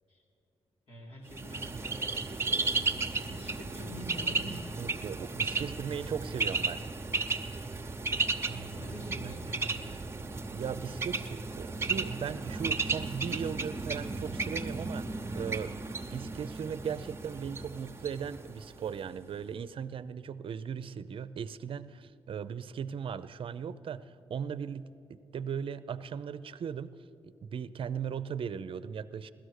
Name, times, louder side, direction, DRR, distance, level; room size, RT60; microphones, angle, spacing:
voice 1, 0.9-4.7 8.3-9.9, equal, 75° left, -4 dB, 3.7 m, -46 dB
Bird, 1.3-19.1, right 3 dB, 25° right, 0.9 m, -34 dB
voice 2, 4.8-6.8 9.2-9.4 10.5-26.9 27.2-29.3, right 7 dB, 60° right, 14 dB, 0.5 m, -38 dB
16.0 x 13.0 x 6.5 m, 2.9 s
cardioid pair, 75°, 10 cm